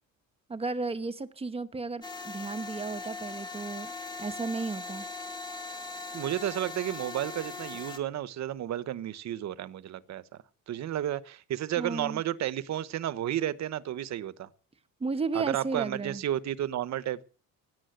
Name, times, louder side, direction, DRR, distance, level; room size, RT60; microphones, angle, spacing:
voice 1, 0.5-3.9 4.2-5.1 11.8-12.2 15.0-16.2, right 4 dB, 15° right, 1.0 m, -34 dB
sound 1, 2.0-8.0, left 3 dB, 10° left, 1.8 m, -40 dB
voice 2, 6.1-10.2 10.7-14.5 15.3-17.2, right 12 dB, 50° right, 1.0 m, -32 dB
17.0 x 10.5 x 7.9 m
cardioid pair, 180°, 36 cm